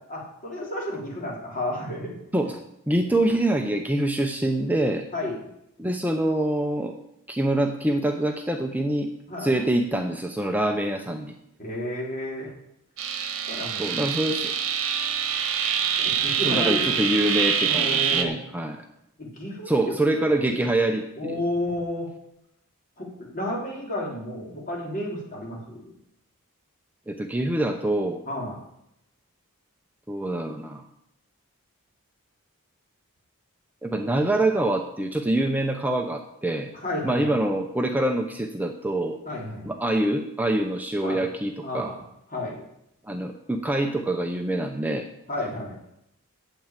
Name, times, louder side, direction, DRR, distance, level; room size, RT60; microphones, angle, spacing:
voice 1, 0.1-2.1 5.1-5.4 9.3-9.5 11.6-12.5 13.5-14.0 16.0-17.1 17.6-18.4 19.2-19.9 20.5-20.6 21.2-22.1 23.0-25.9 28.3-28.6 36.7-37.4 39.3-39.7 41.0-41.2 41.6-42.0 42.3-42.6 45.3-45.8, left 1 dB, 40° left, -2 dB, 3.6 m, -32 dB
voice 2, 2.3-5.0 5.8-6.9 7.3-9.1 9.4-11.3 13.8-14.5 16.4-18.9 19.7-21.4 27.1-28.2 30.1-30.9 33.8-36.7 37.0-39.2 39.7-41.9 43.1-45.1, right 1 dB, 5° right, 4 dB, 0.7 m, -25 dB
sound 1, 13.0-18.2, right 7 dB, 65° right, 1.5 m, -25 dB
9.1 x 7.9 x 8.9 m, 0.80 s
head